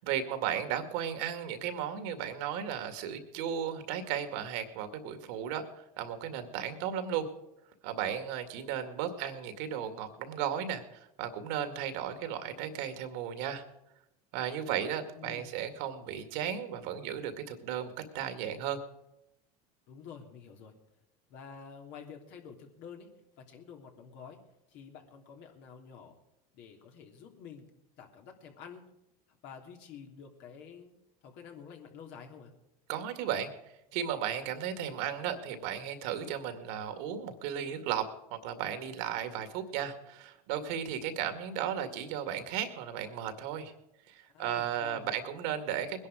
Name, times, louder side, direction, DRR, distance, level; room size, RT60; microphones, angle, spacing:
voice 1, 0.0-7.3 7.8-13.6 14.3-18.8 32.9-33.5 33.9-38.1 38.3-43.7 44.1-46.1, right 9 dB, 70° right, 9 dB, 2.2 m, -35 dB
voice 2, 15.1-15.5 19.9-20.7 21.3-23.1 23.4-24.4 24.7-26.2 26.5-27.7 28.0-28.8 29.3-30.9 31.2-32.5 44.3-45.2, left 6 dB, 60° left, 2 dB, 3.2 m, -49 dB
20.5 x 11.0 x 5.0 m, 0.86 s
supercardioid pair, 100°, 20 cm